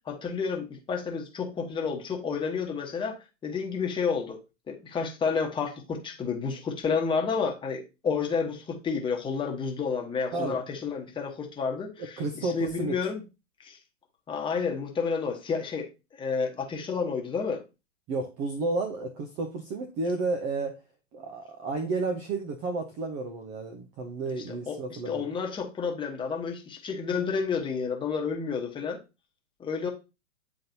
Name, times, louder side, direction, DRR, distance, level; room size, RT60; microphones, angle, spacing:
voice 1, 0.1-4.4 4.7-13.2 13.6-13.8 14.3-17.6 24.3-29.0 29.6-29.9, left 5 dB, 15° left, 1.1 m, -30 dB
voice 2, 12.0-13.0 18.1-20.8 21.1-25.3, right 3 dB, 20° right, 0.5 m, -32 dB
9.4 x 3.8 x 2.8 m
figure-of-eight pair, 115°, 39 cm